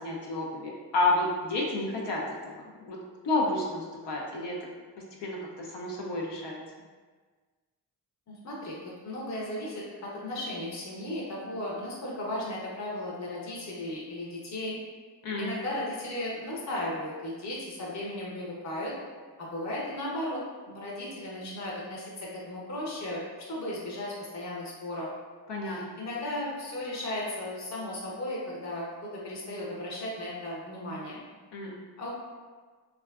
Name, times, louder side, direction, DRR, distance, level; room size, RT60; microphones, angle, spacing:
voice 1, 0.0-3.0 3.2-4.6 5.2-6.6 15.2-15.5 25.5-26.0 31.5-31.8, left 2 dB, 80° left, -3 dB, 0.6 m, -30 dB
voice 2, 8.3-8.8 9.0-14.8 15.4-18.9 19.4-20.4 20.7-23.2 23.5-25.1 25.6-31.2 32.0-32.1, left 1 dB, 40° left, -4 dB, 0.8 m, -35 dB
3.2 x 2.4 x 2.3 m, 1.4 s
cardioid pair, 50°, 41 cm